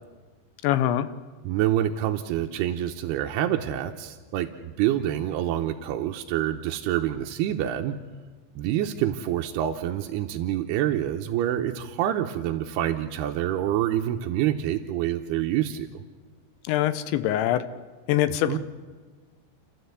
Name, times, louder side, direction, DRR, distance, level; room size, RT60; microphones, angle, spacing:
voice 1, 0.6-1.1 16.6-17.6 18.1-18.6, left 12 dB, 80° left, 13 dB, 2.9 m, -23 dB
voice 2, 1.4-8.0 8.6-15.9 18.5-18.6, right 12 dB, 80° right, 4 dB, 2.4 m, -27 dB
30.0 x 12.5 x 8.1 m, 1.4 s
omnidirectional pair, 5.5 m